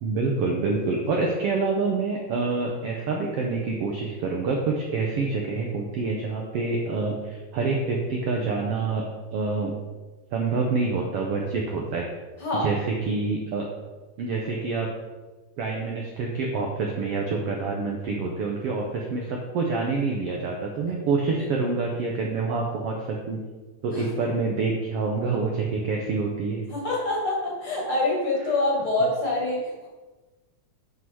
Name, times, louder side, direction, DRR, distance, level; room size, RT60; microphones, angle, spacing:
voice 1, 0.0-9.0 9.3-9.7 10.3-12.1 12.5-12.8 13.1-13.6 14.2-14.9 15.6-23.4 23.8-26.6, right 4 dB, 75° right, 0 dB, 1.4 m, -27 dB
voice 2, 12.4-12.7 21.4-21.5 23.9-24.1 26.7-29.9, left 2 dB, 50° left, -2 dB, 2.0 m, -26 dB
7.8 x 5.9 x 4.7 m, 1.2 s
omnidirectional pair, 3.7 m